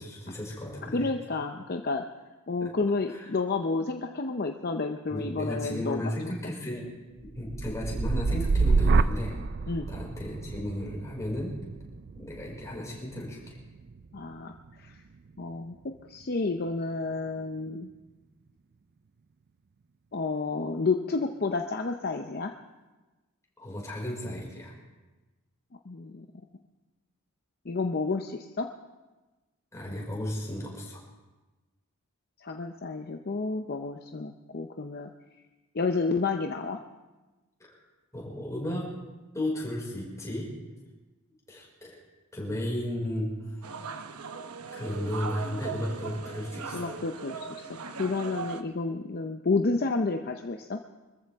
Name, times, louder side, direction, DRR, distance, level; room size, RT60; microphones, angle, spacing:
voice 1, 0.0-1.1 2.6-2.7 3.1-3.3 5.1-6.8 7.3-9.3 9.9-11.6 12.1-13.6 23.6-24.7 29.7-31.0 37.7-37.8 38.1-38.8 39.3-40.5 41.5-42.0 42.3-43.3 44.7-46.9, left 1 dB, 15° left, -4 dB, 5.3 m, -34 dB
voice 2, 0.8-2.0 2.5-6.1 9.7-9.9 14.1-15.0 15.4-15.8 16.1-17.9 20.1-22.5 25.9-26.3 27.7-28.7 32.4-35.1 35.7-36.8 46.7-47.6 48.0-50.8, left 3 dB, 45° left, 5 dB, 0.6 m, -30 dB
sound 1, 7.2-15.3 15.7-16.2, right 4 dB, 45° right, 0.4 m, -29 dB
sound 2, 43.6-48.6, right 5 dB, 80° right, 0.9 m, -39 dB
25.0 x 14.5 x 3.6 m, 1.2 s
head